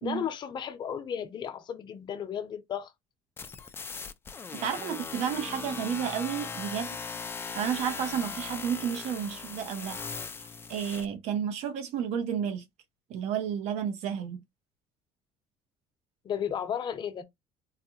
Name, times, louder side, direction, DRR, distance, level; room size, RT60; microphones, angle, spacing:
voice 1, 0.0-2.9 5.3-5.4 16.2-17.2, left 8 dB, 40° left, 0.8 m, -34 dB
sound 1, 3.4-11.1, left 5 dB, 20° left, 0.4 m, -39 dB
voice 2, 4.6-7.0 7.5-10.0 10.4-12.6 13.1-14.4, right 8 dB, 70° right, 0.8 m, -31 dB
4.0 x 2.3 x 2.8 m
cardioid pair, 125°, 12 cm